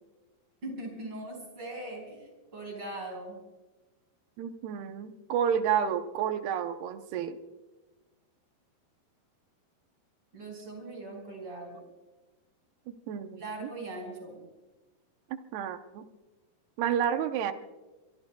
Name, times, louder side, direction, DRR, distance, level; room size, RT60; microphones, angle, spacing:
voice 1, 0.6-3.4 10.3-11.8 13.4-14.4, right 2 dB, 30° right, 1 dB, 5.5 m, -40 dB
voice 2, 4.4-7.4 12.9-13.7 15.5-16.0 16.8-17.5, right 8 dB, 80° right, 8 dB, 2.8 m, -30 dB
25.5 x 23.0 x 2.3 m, 1.2 s
omnidirectional pair, 4.7 m